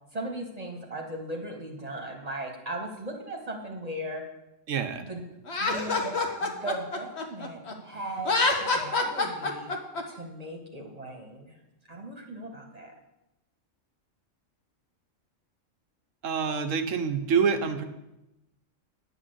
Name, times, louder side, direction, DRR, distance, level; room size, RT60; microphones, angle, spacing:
voice 1, 0.1-4.2 5.0-5.3 5.6-9.7 10.0-12.9, right 1 dB, 30° right, 2 dB, 1.6 m, -38 dB
voice 2, 4.7-5.0 16.2-17.8, right 6 dB, 75° right, 8 dB, 1.3 m, -26 dB
Laughter, 5.5-7.7 8.2-10.0, left 3 dB, 55° left, 1.5 m, -26 dB
10.0 x 6.3 x 7.9 m, 0.94 s
omnidirectional pair, 1.4 m